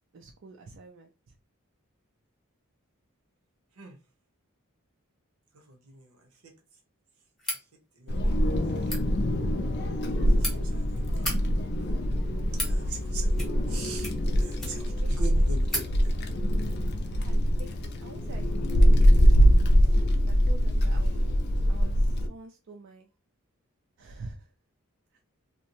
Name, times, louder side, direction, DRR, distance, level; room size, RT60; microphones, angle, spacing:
voice 1, 0.1-1.1 14.7-15.4 17.1-18.7 19.0-21.1 21.7-23.1 24.0-24.5, right 3 dB, 55° right, 0.4 m, -48 dB
voice 2, 5.5-6.2 6.4-6.5 8.0-8.4 10.6-10.7 11.2-11.3 12.6-13.3 13.7-16.2, right 3 dB, 80° right, 0.8 m, -41 dB
sound 1, 7.4-7.6 8.7-9.0 10.0-10.5 11.1-11.4 12.2-12.8 13.3-13.7 14.0-15.0 15.3-15.4 15.7-15.9, equal, ahead, 0.8 m, -34 dB
Wind, 8.1-22.3, equal, 50° left, 0.4 m, -23 dB
2.7 x 2.1 x 2.9 m
head